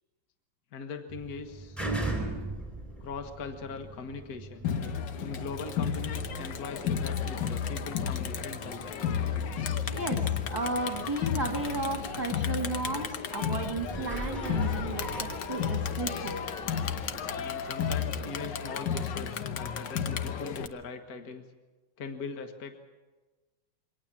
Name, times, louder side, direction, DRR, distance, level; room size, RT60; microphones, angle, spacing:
voice 1, 0.7-1.8 3.0-4.7 5.2-9.1 17.3-21.4 22.0-22.8, left 4 dB, 50° left, 6 dB, 1.8 m, -41 dB
sound 1, 1.1-18.4 19.0-19.1, right 2 dB, ahead, 4.6 m, -41 dB
Crowd, 4.6-20.7, left 7 dB, 70° left, 1.6 m, -32 dB
voice 2, 9.9-15.1 15.5-16.4, right 2 dB, 20° right, 2 dB, 2.2 m, -33 dB
24.5 x 18.5 x 7.4 m, 1.2 s
omnidirectional pair, 2.1 m